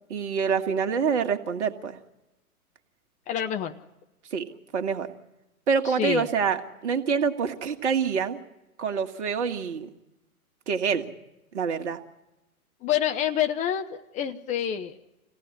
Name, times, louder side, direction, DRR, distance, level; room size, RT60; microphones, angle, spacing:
voice 1, 0.1-2.0 4.3-4.4 4.7-5.1 5.7-6.6 6.8-8.4 8.8-9.9 10.7-11.1 11.5-12.0, right 6 dB, 50° right, 6 dB, 2.1 m, -26 dB
voice 2, 3.3-3.7 5.8-6.3 12.8-14.9, left 10 dB, 15° left, 6 dB, 0.8 m, -27 dB
26.5 x 17.5 x 9.8 m, 0.99 s
figure-of-eight pair, 120°, 44 cm